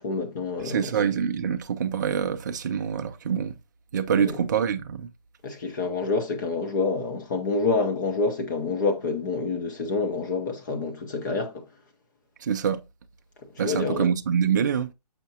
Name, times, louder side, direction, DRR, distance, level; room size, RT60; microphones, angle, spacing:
voice 1, 0.0-0.9 4.1-4.4 5.4-11.7 13.6-14.1, left 4 dB, 30° left, 0.7 m, -27 dB
voice 2, 0.6-3.6 3.9-5.1 12.4-12.8 13.6-14.9, right 7 dB, 30° right, 0.4 m, -25 dB
6.9 x 5.7 x 2.7 m
hypercardioid pair, 165°, 21 cm